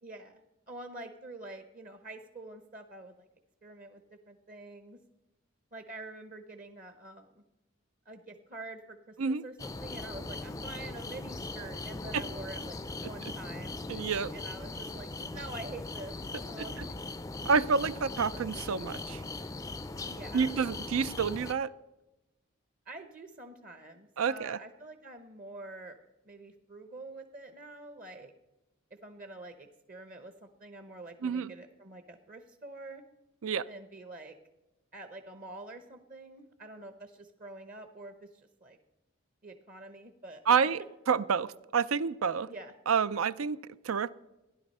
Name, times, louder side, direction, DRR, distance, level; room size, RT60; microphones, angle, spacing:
voice 1, 0.0-3.3 3.6-4.0 4.3-5.0 5.7-7.3 8.1-13.8 14.3-16.2 16.5-17.0 20.1-20.6 22.9-26.0 26.2-28.3 28.9-33.0 33.7-34.4 34.9-38.8 39.4-40.7 42.5-42.7, right 2 dB, 40° right, 7 dB, 0.9 m, -46 dB
sound 1, 9.6-21.5, left 2 dB, 15° left, 0.4 m, -40 dB
voice 2, 13.9-14.3 16.6-16.9 17.4-19.2 20.3-21.7 24.2-24.6 31.2-31.5 33.4-33.7 40.5-42.5 42.9-44.1, right 6 dB, 90° right, 17 dB, 0.5 m, -29 dB
16.0 x 11.0 x 5.4 m, 0.99 s
head